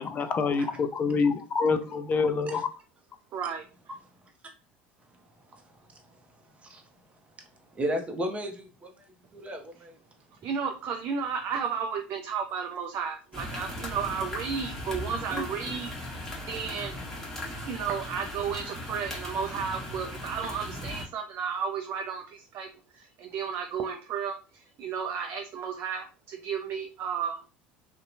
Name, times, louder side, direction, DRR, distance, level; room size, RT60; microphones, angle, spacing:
voice 1, 0.0-2.7, left 5 dB, 35° left, 8 dB, 0.4 m, -26 dB
voice 2, 3.3-3.7 10.4-15.9 16.5-17.0 17.6-22.7 22.9-27.4, right 6 dB, 50° right, 4 dB, 0.4 m, -33 dB
voice 3, 7.7-9.0 9.3-10.0, right 1 dB, 25° right, 3 dB, 0.7 m, -34 dB
sound 1, 13.3-21.1, left 1 dB, 10° left, 1.1 m, -38 dB
2.7 x 2.1 x 2.6 m, 0.34 s
hypercardioid pair, 75°, 5 cm